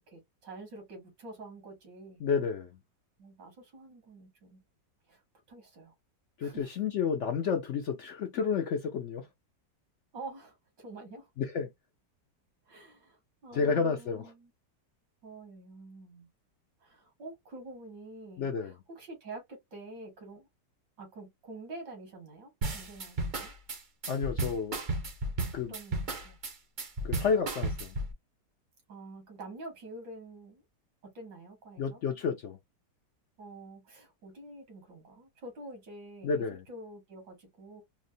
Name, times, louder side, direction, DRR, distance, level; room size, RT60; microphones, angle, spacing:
voice 1, 0.0-2.2 3.2-4.6 5.1-5.2 5.5-5.9 6.4-6.7 10.1-11.3 12.7-14.5 15.2-16.3 16.8-20.5 21.0-23.5 25.7-26.4 28.9-30.6 31.0-32.0 33.4-37.8, right 2 dB, 80° right, 2.2 m, -47 dB
voice 2, 2.2-2.7 6.4-9.3 11.4-11.7 13.5-14.3 18.4-18.7 24.1-24.8 25.5-25.7 27.0-27.9 31.8-32.6 36.2-36.6, left 6 dB, 70° left, 0.7 m, -30 dB
sound 1, 22.6-28.1, right 2 dB, 50° right, 0.6 m, -34 dB
4.4 x 2.1 x 2.6 m
omnidirectional pair, 1.9 m